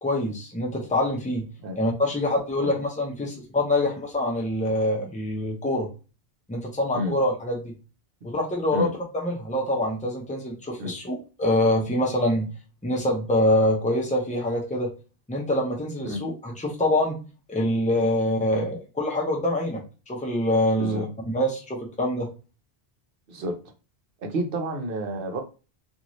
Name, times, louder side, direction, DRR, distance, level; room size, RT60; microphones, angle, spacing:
voice 1, 0.0-1.5 1.8-5.9 6.5-7.8 8.2-12.5 12.8-14.9 15.3-17.2 17.5-22.3, left 1 dB, 10° left, -1 dB, 0.6 m, -25 dB
voice 2, 24.2-25.4, right 1 dB, 60° right, 4 dB, 0.8 m, -30 dB
2.6 x 2.5 x 3.0 m, 0.33 s
omnidirectional pair, 1.1 m